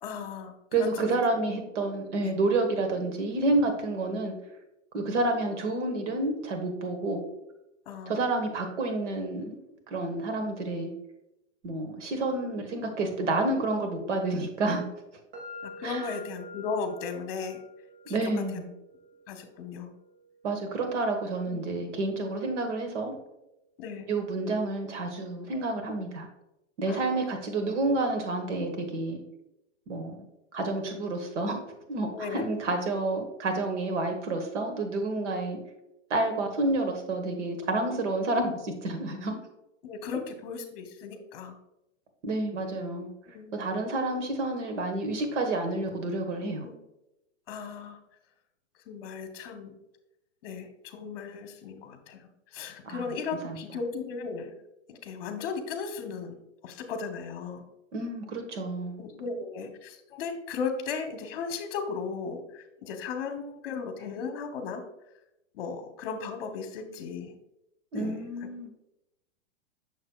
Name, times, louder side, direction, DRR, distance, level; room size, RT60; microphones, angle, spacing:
voice 1, 0.0-1.2 2.1-2.4 7.9-8.2 13.9-14.2 15.6-17.6 18.1-18.2 18.5-18.6 19.3-19.9 21.5-21.7 23.8-24.1 26.8-27.3 32.1-32.5 35.2-35.4 39.8-41.6 43.3-43.6 46.6-46.8 47.5-48.0 48.9-49.7 50.4-54.5 54.9-56.3 56.6-57.6 59.0-64.8 65.5-67.3 67.9-68.2, left 5 dB, 50° left, 6 dB, 1.0 m, -36 dB
voice 2, 0.7-4.3 4.9-7.2 8.1-9.5 9.9-10.9 11.6-14.8 15.8-16.1 18.1-18.7 20.4-23.2 24.1-26.3 26.8-29.2 29.9-30.2 30.5-31.6 31.9-35.6 36.1-39.3 42.2-43.1 43.5-46.7 52.8-53.0 53.4-53.6 57.9-59.0 67.9-68.7, right 2 dB, 70° right, 4 dB, 1.5 m, -29 dB
sound 1, 15.3-23.2, left 1 dB, 45° right, 1.8 m, -49 dB
6.4 x 6.4 x 2.3 m, 0.88 s
hypercardioid pair, 155°, 37 cm